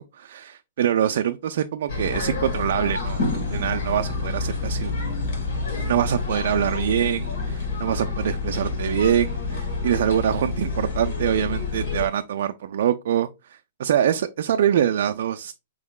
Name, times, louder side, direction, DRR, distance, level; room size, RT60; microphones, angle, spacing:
voice 1, 0.1-4.9 5.8-15.5, right 10 dB, 65° right, 0.3 m, -24 dB
sound 1, 1.9-12.1, left 3 dB, 70° left, 2.6 m, -28 dB
4.7 x 3.6 x 2.3 m
hypercardioid pair, 135°, 0 cm